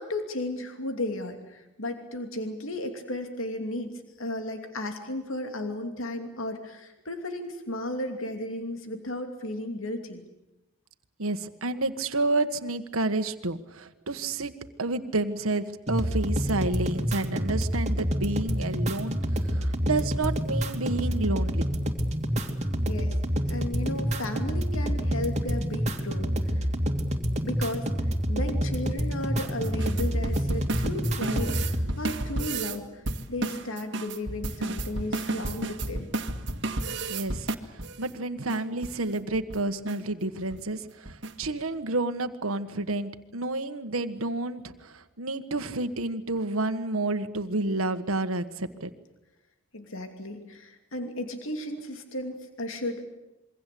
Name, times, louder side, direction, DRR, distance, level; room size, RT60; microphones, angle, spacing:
voice 1, 0.0-3.9 4.2-10.2 22.9-23.2 23.5-26.7 27.4-33.0 33.3-36.1 49.7-53.0, left 1 dB, 70° left, 6 dB, 2.8 m, -34 dB
voice 2, 11.2-21.7 37.1-48.9, right 2 dB, 85° right, 8 dB, 1.6 m, -30 dB
sound 1, 15.9-31.9, equal, 35° right, 2.9 m, -28 dB
sound 2, 29.6-32.8 33.1-38.0 38.5-38.6 38.8-39.0 39.3-39.6 39.9-40.0 40.4-40.6 41.1-41.5, right 2 dB, 60° right, 2.0 m, -32 dB
27.5 x 23.5 x 8.5 m, 0.93 s
head